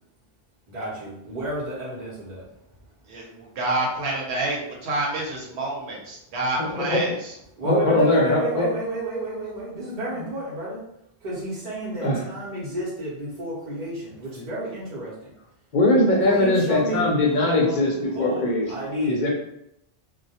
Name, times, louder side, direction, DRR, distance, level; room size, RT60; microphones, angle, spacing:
voice 1, 0.7-2.4 7.6-10.8 11.2-15.3 16.2-17.8 18.1-19.2, right 1 dB, 50° right, -8 dB, 0.8 m, -31 dB
voice 2, 3.1-7.3, right 2 dB, 85° right, -2 dB, 0.9 m, -28 dB
voice 3, 6.6-7.0 7.6-8.7 12.0-12.2 15.7-18.7 19.0-19.3, left 2 dB, 55° left, -1 dB, 0.6 m, -21 dB
2.2 x 2.1 x 2.7 m, 0.78 s
omnidirectional pair, 1.1 m